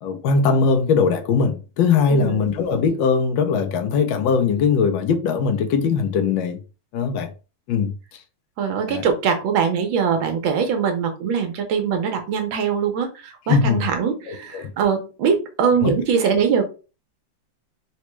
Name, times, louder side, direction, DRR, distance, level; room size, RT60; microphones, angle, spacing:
voice 1, 0.0-6.6 6.9-7.3 7.7-7.9 8.9-9.0 13.5-13.9 14.3-14.7 15.8-15.9, left 5 dB, 80° left, 1.3 m, -20 dB
voice 2, 2.1-2.5 8.6-16.6, right 6 dB, 85° right, 1.6 m, -22 dB
4.0 x 2.2 x 3.0 m
omnidirectional pair, 2.1 m